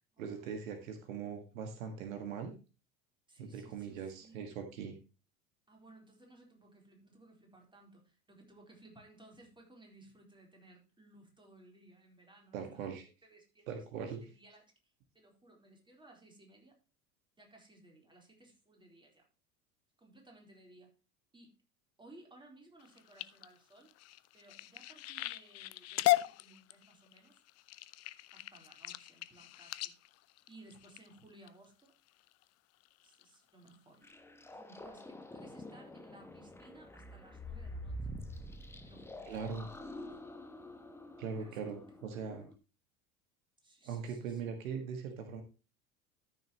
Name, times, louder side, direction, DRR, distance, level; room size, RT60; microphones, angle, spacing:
voice 1, 0.2-2.5 3.4-5.0 12.5-13.0 13.7-14.2 39.3-39.7 41.2-42.5 43.9-45.4, right 6 dB, 65° right, 6 dB, 1.8 m, -41 dB
voice 2, 3.3-4.5 5.7-14.6 15.1-16.8 17.4-19.3 20.0-21.0 21.3-21.5 22.0-23.9 24.3-27.4 28.3-29.9 30.5-31.9 33.0-34.1 34.5-38.0 38.8-40.1 41.4-41.9 43.6-44.4, right 2 dB, 10° right, 1 dB, 3.9 m, -60 dB
sound 1, 22.8-31.5 32.1-32.4 32.8-33.2 33.7-33.8 34.1-34.2, left 19 dB, 35° left, 0.6 m, -37 dB
sound 2, 34.0-42.5, equal, 5° left, 1.2 m, -47 dB
13.5 x 6.6 x 2.9 m, 0.31 s
figure-of-eight pair, 75°, 43 cm